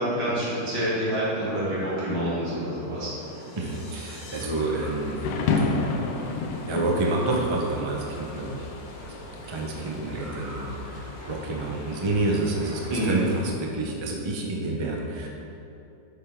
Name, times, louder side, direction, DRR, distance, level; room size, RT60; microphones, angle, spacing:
voice 1, 0.0-3.4 12.9-13.2, right 1 dB, 85° right, -8 dB, 3.0 m, -27 dB
sound 1, 0.5-13.6, equal, 10° right, 1.2 m, -44 dB
sound 2, 2.9-4.5, left 4 dB, 70° left, 1.6 m, -48 dB
voice 2, 3.6-5.2 6.7-8.7 9.0-9.1 9.4-13.3 13.6-15.3, right 2 dB, 25° right, -1 dB, 0.5 m, -28 dB
Thunder / Rain, 4.5-13.5, left 4 dB, 85° left, 1.4 m, -33 dB
9.6 x 6.6 x 3.6 m, 2.7 s
omnidirectional pair, 1.9 m